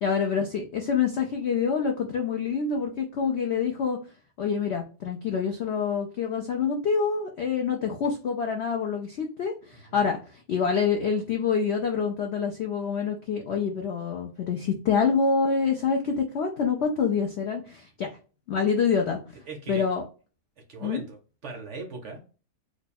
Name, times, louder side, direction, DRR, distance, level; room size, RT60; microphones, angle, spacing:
voice 1, 0.0-4.0 4.4-18.1 18.5-19.2 19.7-20.0 20.8-21.0, left 6 dB, 85° left, 2 dB, 0.5 m, -26 dB
voice 2, 19.5-19.8 20.7-22.2, right 3 dB, 55° right, 2 dB, 0.9 m, -39 dB
3.1 x 2.3 x 4.1 m, 0.36 s
omnidirectional pair, 1.8 m